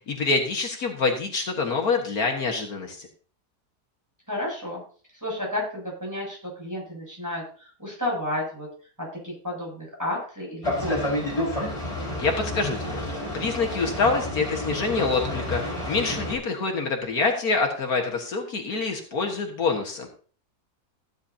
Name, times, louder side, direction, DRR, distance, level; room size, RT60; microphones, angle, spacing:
voice 1, 0.1-3.1 12.2-13.0 13.3-15.6 15.9-20.1, left 4 dB, 70° left, 2 dB, 2.0 m, -26 dB
voice 2, 4.3-4.8 5.2-8.7 9.0-11.2, left 1 dB, 10° right, -2 dB, 7.4 m, -32 dB
Boat Water vehicle, 10.6-16.3, left 1 dB, 20° left, 5.1 m, -30 dB
16.0 x 10.0 x 2.8 m, 0.41 s
omnidirectional pair, 1.6 m